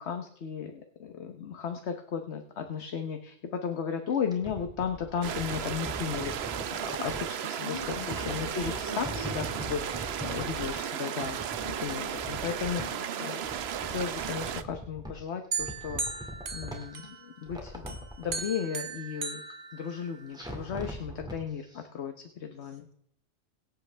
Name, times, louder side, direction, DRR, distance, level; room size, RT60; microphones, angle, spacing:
voice 1, 0.0-11.4 11.8-12.8 13.2-13.4 13.9-19.4 19.7-22.9, left 7 dB, 90° left, 6 dB, 1.2 m, -35 dB
sound 1, 4.1-7.2 7.7-10.9 11.2-13.0 13.3-15.2 15.6-17.1 17.4-18.4 20.3-21.4 21.7-21.8, equal, 5° right, 2.2 m, -41 dB
sound 2, 5.2-14.6, right 9 dB, 75° right, 0.9 m, -35 dB
voice 2, 7.6-9.8 11.6-12.1 12.8-13.4, left 2 dB, 35° left, 1 dB, 2.3 m, -43 dB
sound 3, 15.5-17.5 17.9-20.4, right 5 dB, 55° right, 1.2 m, -37 dB
24.0 x 8.1 x 3.3 m, 0.71 s
omnidirectional pair, 1.1 m